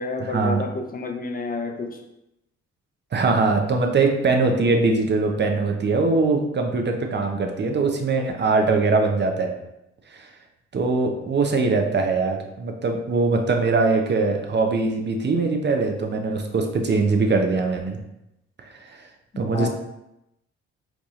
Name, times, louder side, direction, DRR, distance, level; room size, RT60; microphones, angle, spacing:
voice 1, 0.0-2.0 19.5-19.7, left 3 dB, 25° left, 3 dB, 0.7 m, -29 dB
voice 2, 3.1-9.5 10.1-10.3 10.7-18.0 18.7-19.0 19.4-19.7, right 3 dB, 30° right, 3 dB, 0.7 m, -22 dB
4.6 x 2.7 x 2.4 m, 0.88 s
hypercardioid pair, 50°, 33 cm